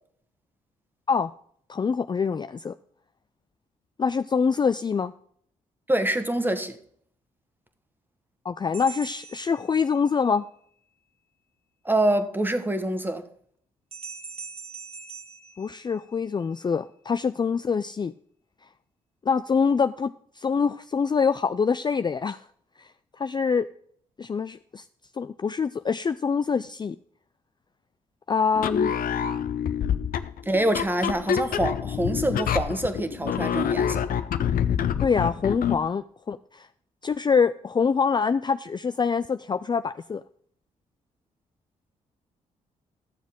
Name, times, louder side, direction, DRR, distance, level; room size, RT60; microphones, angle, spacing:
voice 1, 1.7-2.7 4.0-5.1 8.4-10.5 15.6-18.1 19.3-22.4 22.8-22.9 23.2-23.7 24.2-24.8 25.2-27.0 28.3-28.9 35.0-36.7 37.0-40.2, left 5 dB, 25° left, 0.4 m, -25 dB
voice 2, 5.9-6.8 11.8-13.3 30.5-34.0, right 1 dB, 10° right, 1.4 m, -25 dB
sound 1, 8.7-10.3 13.9-16.4, right 5 dB, 40° right, 0.9 m, -42 dB
sound 2, 28.5-35.9, left 8 dB, 65° left, 0.6 m, -27 dB
13.0 x 7.2 x 3.7 m
hypercardioid pair, 45°, 16 cm